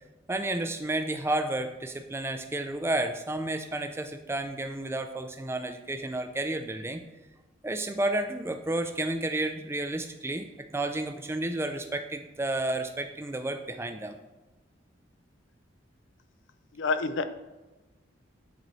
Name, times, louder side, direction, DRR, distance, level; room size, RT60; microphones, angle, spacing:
voice 1, 0.3-7.0 7.6-10.5 10.7-14.2, right 2 dB, 10° right, 7 dB, 0.4 m, -31 dB
voice 2, 16.7-17.2, left 4 dB, 65° left, 10 dB, 0.4 m, -28 dB
7.8 x 4.2 x 3.1 m, 1.1 s
head